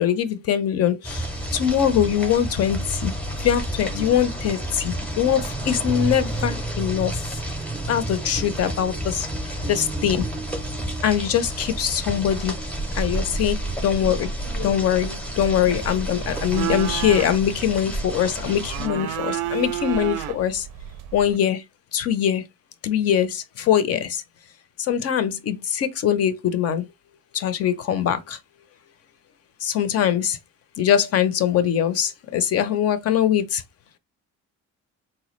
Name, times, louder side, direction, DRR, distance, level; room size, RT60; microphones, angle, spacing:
voice 1, 0.0-3.1 3.4-7.4 7.9-10.2 11.0-12.6 13.0-20.7 21.1-21.6 21.9-22.4 22.8-24.2 24.8-26.9 27.3-28.4 29.6-30.4 30.8-33.6, left 9 dB, 50° left, 0.5 m, -22 dB
sound 1, 1.0-18.9, right 1 dB, 5° left, 0.6 m, -30 dB
sound 2, 15.4-21.4, right 12 dB, 85° right, 0.5 m, -31 dB
4.0 x 2.2 x 3.0 m
cardioid pair, 155°, 32 cm